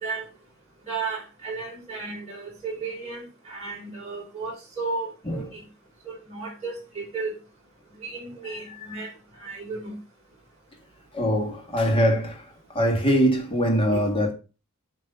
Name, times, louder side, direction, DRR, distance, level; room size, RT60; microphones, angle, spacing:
voice 1, 0.9-5.6 6.1-7.4 8.0-9.1 9.4-10.0 13.9-14.1, right 4 dB, 30° right, 4.2 m, -34 dB
voice 2, 11.1-12.4 12.7-14.3, equal, 25° left, 1.8 m, -22 dB
9.2 x 3.3 x 5.5 m
head